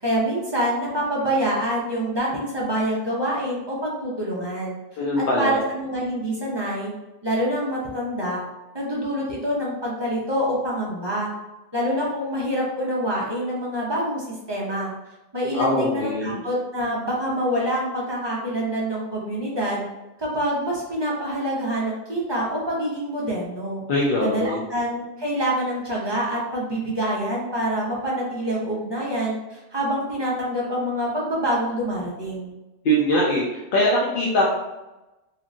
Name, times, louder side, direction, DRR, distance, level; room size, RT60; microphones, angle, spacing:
voice 1, 0.0-6.9 7.2-8.4 8.7-11.3 11.7-14.9 15.3-19.8 20.2-23.8 24.2-32.5, equal, 30° right, -5 dB, 0.5 m, -26 dB
voice 2, 5.0-5.6 15.5-16.4 23.9-24.6 32.8-33.4 33.7-34.5, equal, 60° left, -5 dB, 0.7 m, -21 dB
2.9 x 2.4 x 2.5 m, 1.0 s
omnidirectional pair, 1.1 m